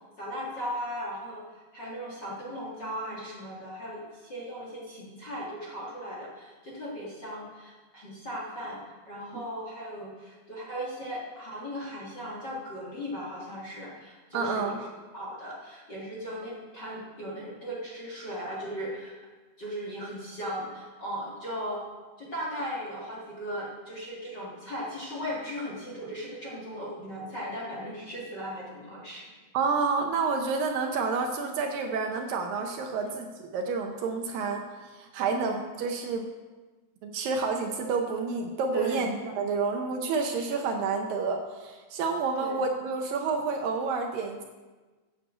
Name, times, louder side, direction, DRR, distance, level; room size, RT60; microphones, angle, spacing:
voice 1, 0.2-14.9 15.1-19.2 19.6-21.9 22.2-29.3 33.0-33.1 35.3-35.6 38.7-39.1 42.4-42.7, equal, 35° left, -4 dB, 1.9 m, -37 dB
voice 2, 14.3-14.8 29.5-34.6 34.9-36.3 37.0-44.4, right 4 dB, 70° right, 3 dB, 2.4 m, -29 dB
9.9 x 7.7 x 7.5 m, 1.3 s
omnidirectional pair, 4.5 m